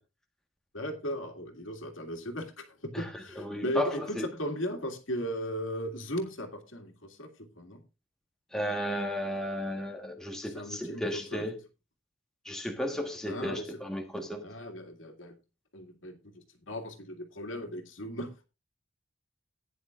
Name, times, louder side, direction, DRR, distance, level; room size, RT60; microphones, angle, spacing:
voice 1, 0.7-7.8 10.5-11.0 11.3-11.4 13.3-13.6 14.4-15.4 15.7-18.5, equal, 75° left, 4 dB, 2.2 m, -37 dB
voice 2, 2.9-4.3 8.5-11.6 12.4-14.4, equal, 5° left, 2 dB, 1.3 m, -34 dB
15.5 x 9.8 x 2.5 m, 0.28 s
head